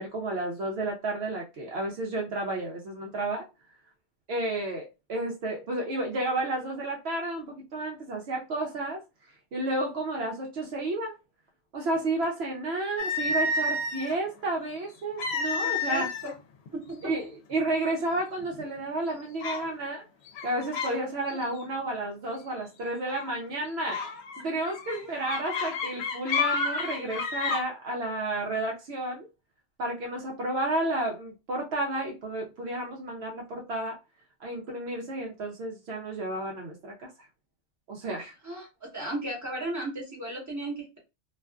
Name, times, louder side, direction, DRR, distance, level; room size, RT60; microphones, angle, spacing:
voice 1, 0.0-3.5 4.3-9.0 9.5-11.2 11.7-16.1 17.0-20.0 20.4-24.0 24.4-29.3 29.8-34.0 34.4-37.1 37.9-38.3, right 2 dB, 70° right, 0.8 m, -31 dB
sound 1, 13.0-14.2 15.2-16.3 16.7-16.9 17.6-17.7 18.2-18.6 19.4-19.7 20.3-21.0 21.3-21.6 23.1-23.3 23.9-27.6, left 3 dB, 70° left, 0.8 m, -30 dB
voice 2, 15.6-16.3 16.9-17.1 24.9-25.1 38.4-41.0, right 1 dB, 15° right, 1.0 m, -35 dB
2.4 x 2.4 x 2.2 m
omnidirectional pair, 1.2 m